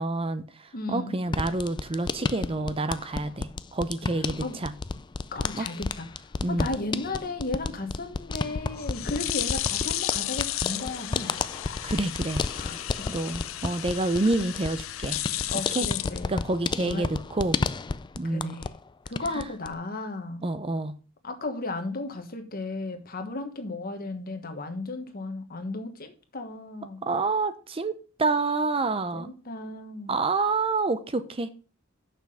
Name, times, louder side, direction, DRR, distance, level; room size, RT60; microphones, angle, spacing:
voice 1, 0.0-4.7 5.5-5.7 6.4-6.7 11.8-12.4 13.1-15.2 15.7-15.9 16.3-17.6 18.2-18.6 19.3-19.4 20.4-20.9 27.0-29.3 30.1-31.5, right 3 dB, 25° right, 11 dB, 0.6 m, -28 dB
voice 2, 0.7-1.2 4.2-4.6 5.3-11.4 12.5-13.1 14.2-14.3 15.5-16.4 16.8-17.1 18.2-18.7 19.1-20.5 21.2-27.0 29.1-30.2, left 2 dB, 45° left, 7 dB, 1.3 m, -35 dB
sound 1, 1.3-18.8 19.1-19.7, left 4 dB, 20° left, 0.3 m, -32 dB
sound 2, 8.4-16.8, left 13 dB, 70° left, 0.5 m, -33 dB
6.9 x 5.9 x 5.5 m, 0.37 s
head